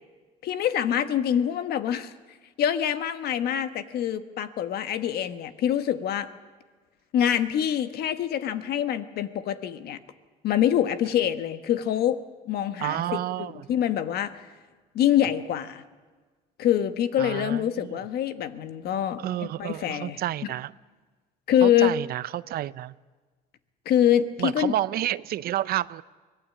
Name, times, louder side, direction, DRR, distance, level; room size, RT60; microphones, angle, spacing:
voice 1, 0.4-2.1 2.6-6.3 7.1-10.0 10.4-12.2 12.4-13.0 13.4-14.4 14.9-15.8 16.6-19.2 19.6-20.2 21.5-21.9 23.8-24.7, left 10 dB, 70° left, 10 dB, 1.4 m, -25 dB
voice 2, 12.8-13.7 17.2-18.0 19.2-20.7 21.6-22.9 24.4-26.0, right 13 dB, 65° right, 18 dB, 0.6 m, -30 dB
24.5 x 18.5 x 8.6 m, 1.4 s
cardioid pair, 110°, 17 cm